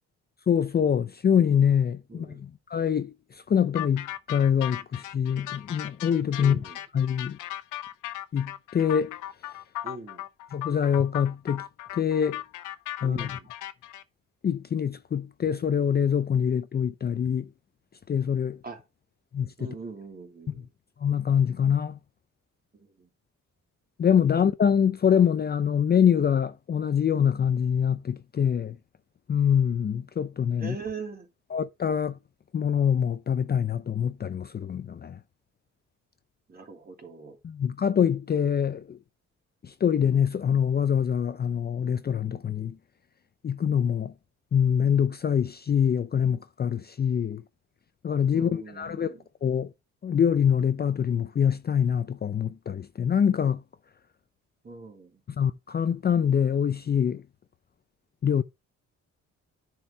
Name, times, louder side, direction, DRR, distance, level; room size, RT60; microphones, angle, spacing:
voice 1, 0.5-6.6 6.9-7.4 8.3-9.2 10.5-11.7 11.9-12.4 13.0-13.4 14.4-17.5 18.1-18.6 19.3-19.7 20.5-20.6 21.0-22.0 24.0-28.8 29.3-30.8 31.5-32.2 32.5-35.2 37.4-39.0 39.6-42.8 43.4-44.1 44.5-47.4 48.0-49.7 50.0-53.6 55.4-57.2 58.2-58.4, left 8 dB, 35° left, 0.5 m, -25 dB
voice 2, 2.1-2.4 6.4-6.8 9.8-10.3 13.0-13.5 18.6-18.8 19.6-20.7 22.7-23.1 30.6-31.3 36.5-37.4 48.3-49.2 54.6-55.2, right 4 dB, 30° right, 3.1 m, -41 dB
sound 1, 3.7-14.0, left 14 dB, 90° left, 0.8 m, -37 dB
10.0 x 4.6 x 4.4 m
cardioid pair, 90°, 30 cm